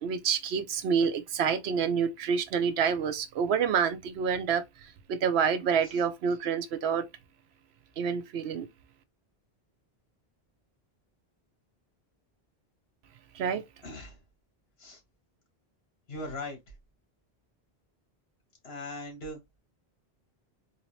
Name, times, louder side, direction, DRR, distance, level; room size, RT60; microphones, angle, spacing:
voice 1, 0.0-4.6 5.1-7.0 8.0-8.7 13.3-13.6, right 6 dB, 85° right, 0.9 m, -27 dB
voice 2, 13.8-14.2 14.8-15.0 16.1-16.6 18.6-19.4, left 2 dB, 75° left, 1.7 m, -39 dB
3.8 x 2.7 x 3.0 m
omnidirectional pair, 1.1 m